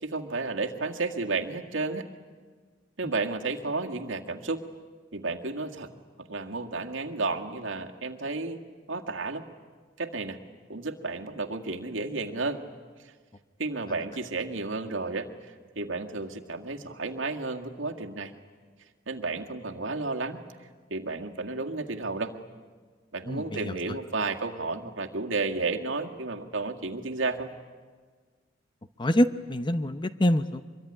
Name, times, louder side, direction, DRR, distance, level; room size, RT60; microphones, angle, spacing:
voice 1, 0.0-2.1 3.0-4.6 5.1-5.9 6.2-8.6 8.9-9.4 10.0-10.4 10.7-12.6 13.0-13.1 13.6-15.3 15.8-18.3 19.1-20.4 20.9-22.3 23.1-27.5, right 3 dB, 80° right, 3 dB, 1.9 m, -32 dB
voice 2, 23.3-23.7 29.0-30.7, left 1 dB, 25° left, 11 dB, 0.7 m, -26 dB
24.5 x 23.0 x 9.8 m, 1.5 s
head